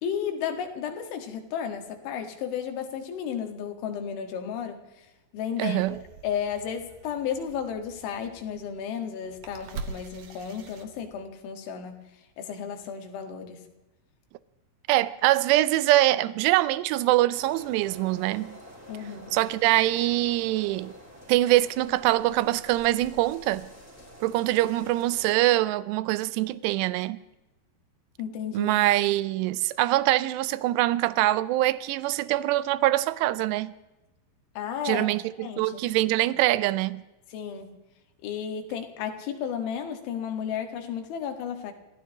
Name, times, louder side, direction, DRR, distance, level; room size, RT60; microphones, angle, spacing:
voice 1, 0.0-4.8 5.3-5.8 6.2-12.0 12.4-13.6 18.9-19.4 28.2-28.8 34.6-35.1 35.4-35.8 37.3-37.8 38.2-41.7, left 8 dB, 85° left, 4.2 m, -33 dB
voice 2, 5.6-6.0 14.9-18.6 19.3-20.9 21.3-23.7 24.2-27.2 28.5-33.7 34.8-37.0, right 16 dB, 80° right, 2.6 m, -24 dB
sound 1, 5.8-11.4, right 4 dB, 60° right, 2.7 m, -44 dB
sound 2, 17.3-25.3, equal, 5° right, 3.5 m, -48 dB
28.0 x 15.5 x 3.0 m
omnidirectional pair, 5.3 m